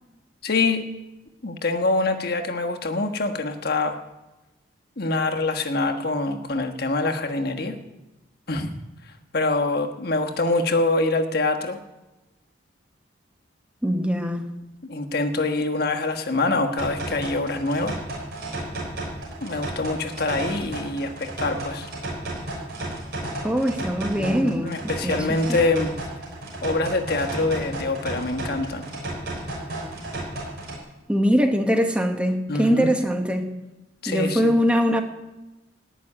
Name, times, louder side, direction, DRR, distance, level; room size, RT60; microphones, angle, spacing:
voice 1, 0.4-0.9 1.4-4.0 5.0-7.8 8.5-8.7 9.0-11.8 14.8-18.0 19.4-21.9 24.2-25.9 26.6-28.9 32.5-33.0 34.0-34.5, left 2 dB, 50° left, 5 dB, 1.4 m, -25 dB
voice 2, 13.8-14.4 23.4-24.7 25.0-25.6 31.1-33.4 34.1-35.0, equal, 5° right, 5 dB, 1.1 m, -22 dB
sound 1, 16.8-30.8, right 1 dB, 55° right, 6.4 m, -33 dB
18.5 x 6.3 x 9.9 m, 1.1 s
head